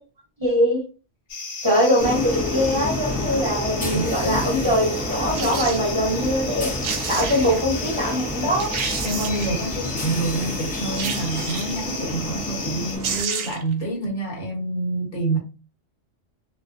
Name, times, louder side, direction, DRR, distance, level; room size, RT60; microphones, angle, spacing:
voice 1, 0.4-0.8 1.6-8.7, equal, 20° right, 1.2 m, -22 dB
sound 1, 1.3-13.0, left 3 dB, 75° left, 1.1 m, -34 dB
sound 2, 2.0-13.2, left 2 dB, 10° left, 0.6 m, -29 dB
sound 3, 5.3-5.8 6.5-6.6 6.8-7.6 8.2-8.3 8.6-9.6 10.9-11.9 12.7-12.8 13.0-13.7 14.1-14.2, right 6 dB, 85° right, 0.9 m, -30 dB
voice 2, 9.0-15.4, right 2 dB, 45° left, 1.1 m, -27 dB
2.5 x 2.1 x 2.5 m
omnidirectional pair, 1.2 m